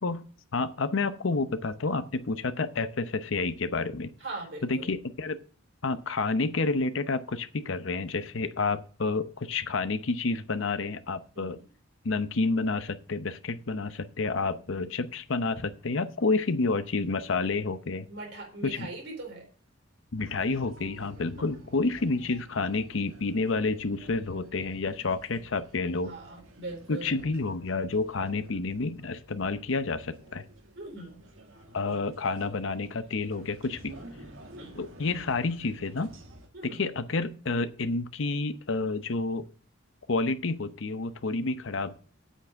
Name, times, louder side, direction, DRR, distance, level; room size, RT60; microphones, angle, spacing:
voice 1, 0.0-4.1 4.7-5.4 5.8-11.6 12.0-18.1 18.6-18.9 20.1-26.1 26.9-30.4 31.7-33.9 34.8-36.1 36.6-39.4 40.1-42.0, left 3 dB, 75° left, 12 dB, 0.8 m, -29 dB
voice 2, 4.2-4.9 11.3-11.6 18.1-19.5 21.4-21.5 26.0-27.2 30.7-31.2 34.5-34.8 36.5-36.9, right 2 dB, 60° right, 0 dB, 4.2 m, -41 dB
sound 1, 20.2-36.5, right 1 dB, 90° right, 2.0 m, -51 dB
8.4 x 6.0 x 7.3 m, 0.42 s
head